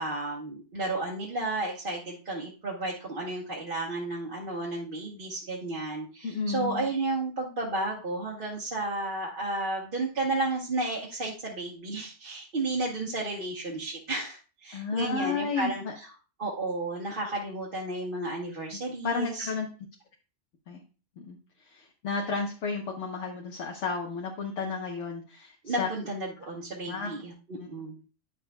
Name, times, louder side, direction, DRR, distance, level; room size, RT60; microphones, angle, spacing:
voice 1, 0.0-16.1 16.4-19.5 25.6-28.0, right 2 dB, 50° right, -3 dB, 1.3 m, -32 dB
voice 2, 6.2-6.8 14.7-15.9 19.0-19.7 20.7-20.8 21.2-21.4 21.7-25.9 26.9-27.1 27.6-27.7, left 4 dB, 80° left, 0 dB, 1.3 m, -32 dB
10.0 x 6.2 x 2.2 m, 0.35 s
omnidirectional pair, 1.2 m